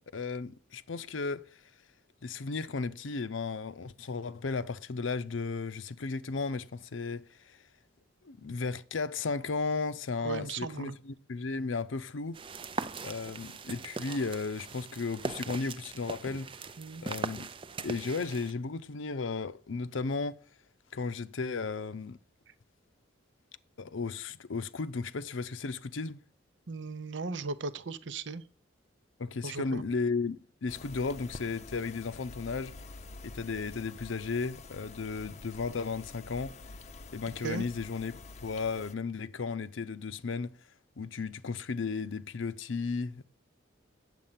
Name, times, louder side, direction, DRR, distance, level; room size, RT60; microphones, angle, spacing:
voice 1, 0.0-1.6 2.2-7.6 8.2-12.4 13.0-16.5 17.0-17.5 17.8-20.4 20.9-22.2 23.8-26.2 29.2-32.7 33.2-36.5 37.1-40.6 41.0-43.2, left 4 dB, 80° left, 0.6 m, -35 dB
voice 2, 10.2-11.0 16.8-17.0 26.7-28.4 29.4-29.8 37.4-37.7, right 4 dB, 65° right, 0.7 m, -37 dB
sound 1, 12.3-18.5, right 4 dB, 25° right, 0.4 m, -40 dB
sound 2, 30.7-38.9, left 3 dB, 35° left, 0.6 m, -48 dB
9.1 x 7.5 x 5.7 m
head